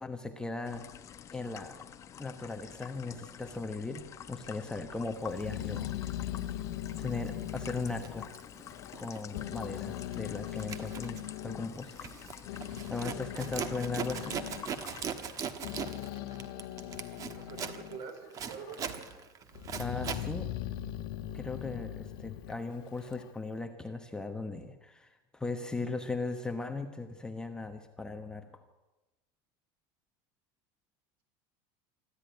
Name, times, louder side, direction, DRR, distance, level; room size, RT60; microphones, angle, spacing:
voice 1, 0.0-0.8 1.3-1.8 2.2-5.9 7.0-8.3 9.0-12.1 12.9-14.4 19.8-20.5 21.3-28.6, left 3 dB, 5° left, 5 dB, 1.1 m, -38 dB
sound 1, 0.6-15.1, left 9 dB, 25° left, 0.9 m, -49 dB
Growling, 5.3-9.0 9.3-11.7 12.2-18.1 18.4-19.1 19.6-23.3, left 13 dB, 75° left, 1.6 m, -40 dB
Zipper (clothing), 7.1-7.3 7.8-9.2 9.5-9.8 10.1-20.3, right 7 dB, 30° right, 1.3 m, -40 dB
voice 2, 17.2-19.1, right 6 dB, 50° right, 8 dB, 4.3 m, -45 dB
24.5 x 14.0 x 9.4 m, 1.1 s
cardioid pair, 165°, 12 cm